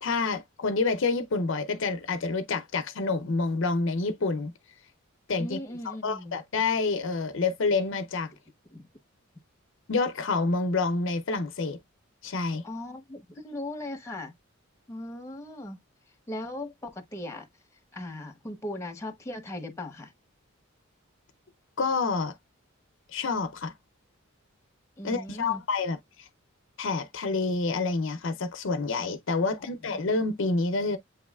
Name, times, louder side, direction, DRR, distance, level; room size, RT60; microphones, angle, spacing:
voice 1, 0.0-4.5 5.3-5.6 5.9-8.3 9.9-11.8 12.2-12.6 21.8-22.3 23.1-23.7 25.0-26.0 26.8-31.0, left 3 dB, 60° left, 0.5 m, -28 dB
voice 2, 5.4-6.4 8.7-8.9 12.6-14.3 14.9-15.8 16.3-17.5 17.9-20.1 25.0-25.6 29.4-29.5 29.9-30.0, left 1 dB, 15° left, 0.8 m, -38 dB
7.6 x 3.1 x 2.3 m
head